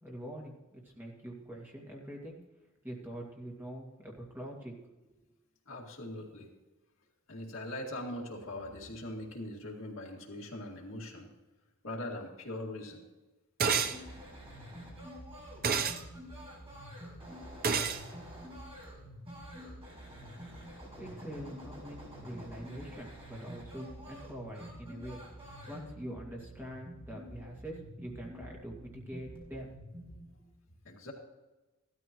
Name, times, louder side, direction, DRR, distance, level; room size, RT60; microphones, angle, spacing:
voice 1, 0.0-2.4 2.8-4.7 5.0-5.2 21.0-29.7, right 1 dB, 10° right, -2 dB, 2.2 m, -44 dB
voice 2, 5.7-6.5 7.3-11.3 11.8-13.0 30.8-31.1, left 1 dB, 65° left, -1 dB, 2.2 m, -41 dB
sound 1, 13.6-14.0 15.6-16.0 17.6-18.0, right 6 dB, 45° right, 0.7 m, -28 dB
sound 2, 13.8-30.2, equal, 25° right, 5.2 m, -48 dB
15.5 x 13.0 x 3.0 m, 1.1 s
head